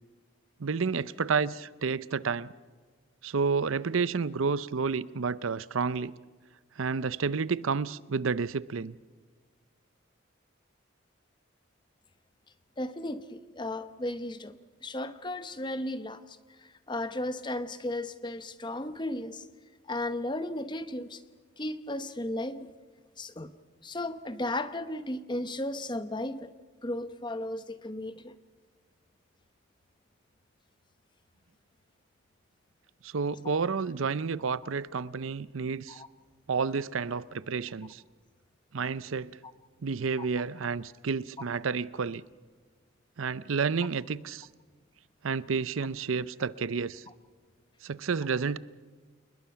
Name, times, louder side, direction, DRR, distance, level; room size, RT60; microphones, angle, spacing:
voice 1, 0.6-2.5 3.2-6.1 6.8-9.0 33.0-36.0 36.5-38.0 38.7-39.4 39.8-42.2 43.2-44.5 45.2-47.0 47.8-48.6, right 5 dB, 80° right, 0.6 m, -30 dB
voice 2, 12.8-19.5 19.9-21.2 21.6-22.7 23.2-23.5 23.8-26.5 26.8-28.3 35.9-36.1 40.2-40.3, left 1 dB, 20° left, 0.9 m, -35 dB
28.5 x 21.0 x 5.8 m
head